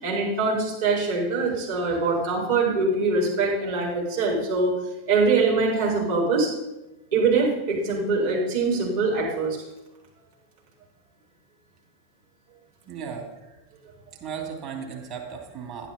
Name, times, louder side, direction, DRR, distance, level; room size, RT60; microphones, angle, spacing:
voice 1, 0.0-4.7 5.1-6.5 7.1-9.6, right 3 dB, 60° right, -4 dB, 5.2 m, -23 dB
voice 2, 12.9-13.3 14.2-15.9, right 6 dB, 40° right, 0 dB, 2.9 m, -35 dB
11.5 x 11.0 x 4.4 m, 0.98 s
figure-of-eight pair, 90°, 0 cm